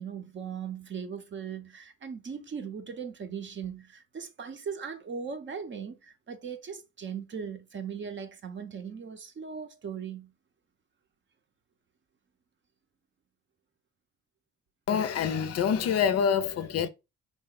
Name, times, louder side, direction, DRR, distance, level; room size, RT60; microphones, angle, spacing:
voice 1, 0.0-10.3, right 6 dB, 40° right, 0.7 m, -39 dB
voice 2, 14.9-16.9, left 7 dB, 55° left, 0.5 m, -26 dB
4.9 x 2.0 x 3.7 m
cardioid pair, 90°, 30 cm